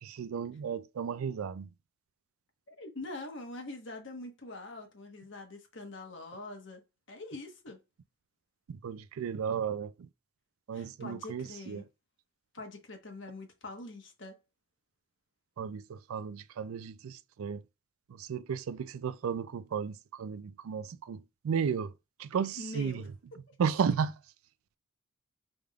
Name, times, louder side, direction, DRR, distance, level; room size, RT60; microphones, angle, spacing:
voice 1, 0.0-1.7 8.7-10.1 10.7-11.8 15.6-17.6 18.1-21.9 22.2-23.0 23.6-24.1, right 7 dB, 85° right, 0.4 m, -34 dB
voice 2, 2.7-6.8 7.1-7.8 10.7-11.9 12.5-14.4 22.6-23.1, left 2 dB, 60° left, 1.2 m, -44 dB
5.0 x 3.4 x 2.3 m
head